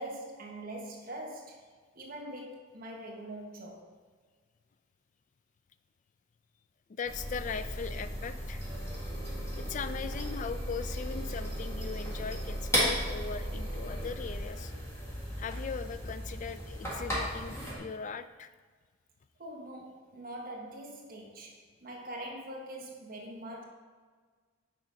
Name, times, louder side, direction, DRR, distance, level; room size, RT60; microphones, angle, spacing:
voice 1, 0.0-1.6 1.9-3.9 19.4-23.6, right 1 dB, 50° right, 0 dB, 1.1 m, -43 dB
voice 2, 6.9-8.6 9.6-14.7 15.4-18.5, left 5 dB, 40° left, 11 dB, 0.3 m, -39 dB
sound 1, 7.0-17.8, equal, 15° left, 1.8 m, -35 dB
6.5 x 4.9 x 5.1 m, 1.5 s
head